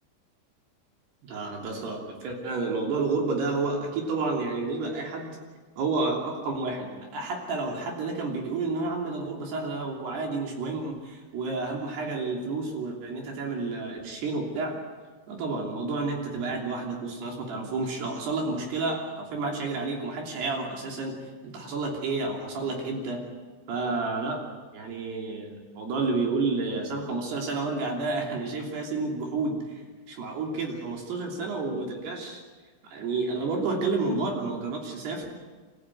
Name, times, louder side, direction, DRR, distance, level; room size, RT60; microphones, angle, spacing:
voice 1, 1.2-5.4 5.8-14.8 15.3-21.2 21.4-23.2 23.7-24.4 24.7-25.5 25.7-29.6 30.1-32.4 32.9-35.3, right 3 dB, 60° right, 1 dB, 5.0 m, -30 dB
27.0 x 14.0 x 9.4 m, 1.3 s
omnidirectional pair, 5.5 m